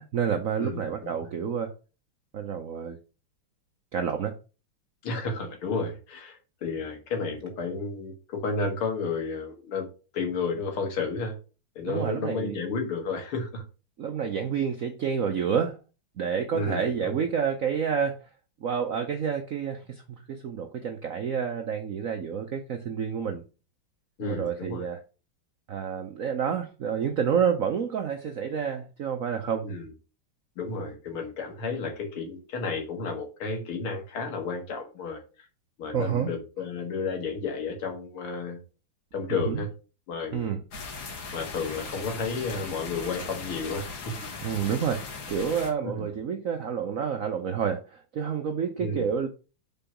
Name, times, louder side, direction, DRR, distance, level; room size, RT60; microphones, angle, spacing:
voice 1, 0.0-1.7 2.3-3.0 3.9-4.4 11.8-12.6 14.0-15.8 16.2-18.2 18.6-23.4 24.2-25.0 25.7-29.7 35.9-36.3 39.3-39.6 40.3-40.6 44.4-45.0 45.3-49.3, right 7 dB, 70° right, 5 dB, 0.7 m, -29 dB
voice 2, 0.6-1.3 5.0-9.9 10.1-11.3 11.8-13.6 16.5-17.2 24.2-24.9 29.6-29.9 30.6-35.2 35.8-38.6 39.1-39.7 40.1-40.5 41.3-44.2 45.8-46.1 48.8-49.1, left 4 dB, 80° left, 4 dB, 2.6 m, -32 dB
sound 1, 40.7-45.7, left 4 dB, 65° left, 2.3 m, -38 dB
5.3 x 4.6 x 5.7 m, 0.33 s
omnidirectional pair, 2.3 m